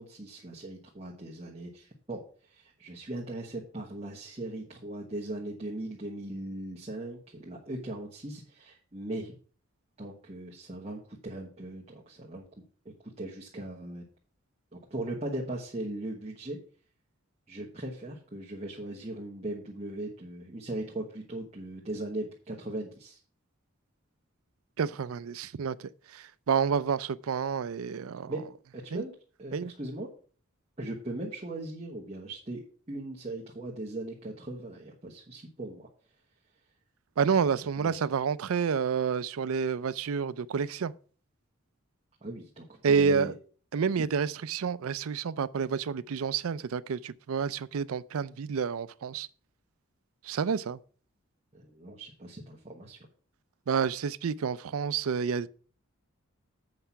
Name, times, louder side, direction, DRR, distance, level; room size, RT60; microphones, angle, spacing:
voice 1, 0.0-9.3 10.0-12.4 12.8-14.1 14.7-16.6 17.5-23.2 28.3-28.4 28.7-29.1 29.4-30.1 30.8-32.6 32.9-35.9 37.6-38.1 42.2-43.3 43.9-44.1 51.5-53.0, right 1 dB, 30° right, 1.3 m, -39 dB
voice 2, 24.8-25.8 26.1-28.4 28.9-29.0 29.5-29.7 37.2-40.9 42.8-43.3 43.7-49.3 50.2-50.8 53.7-55.5, right 6 dB, 80° right, 0.4 m, -29 dB
7.9 x 5.5 x 5.8 m
head